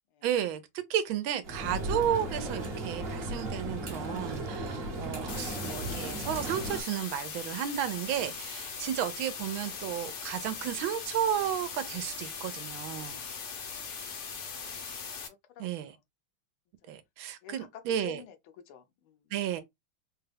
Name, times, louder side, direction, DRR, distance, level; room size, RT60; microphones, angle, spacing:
voice 1, 0.2-0.6 0.9-13.2 15.6-15.9 16.9-18.2 19.3-19.6, right 10 dB, 80° right, 1.4 m, -33 dB
sound 1, 1.4-6.8, right 1 dB, 40° right, 0.9 m, -36 dB
sound 2, 5.3-15.3, left 5 dB, 60° left, 0.7 m, -40 dB
voice 2, 13.1-13.4 14.0-14.2 15.2-16.0 16.8-16.9 17.4-18.4 18.6-19.3, left 9 dB, 85° left, 1.5 m, -51 dB
4.0 x 2.3 x 3.2 m
omnidirectional pair, 2.3 m